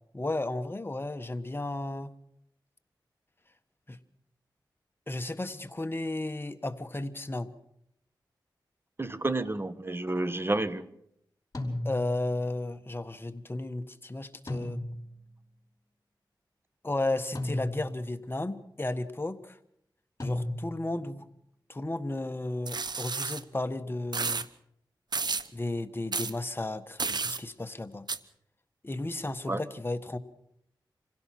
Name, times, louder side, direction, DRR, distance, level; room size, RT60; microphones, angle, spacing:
voice 1, 0.1-2.1 3.9-4.0 5.1-7.5 11.8-14.8 16.8-19.6 20.2-21.3 21.7-24.5 25.5-28.1 28.8-30.2, left 2 dB, 25° left, 8 dB, 1.4 m, -34 dB
voice 2, 9.0-10.8 29.5-29.6, right 2 dB, 30° right, 13 dB, 1.4 m, -30 dB
sound 1, 11.5-12.3 14.5-15.2 17.3-18.1 20.2-21.0, left 1 dB, 40° left, 5.1 m, -34 dB
sound 2, 22.7-23.4 24.1-24.5 25.1-25.5 26.1-26.3 27.0-27.4 28.1-28.2, right 4 dB, 60° right, 1.0 m, -31 dB
26.0 x 16.5 x 5.9 m, 0.74 s
cardioid pair, 55°, 8 cm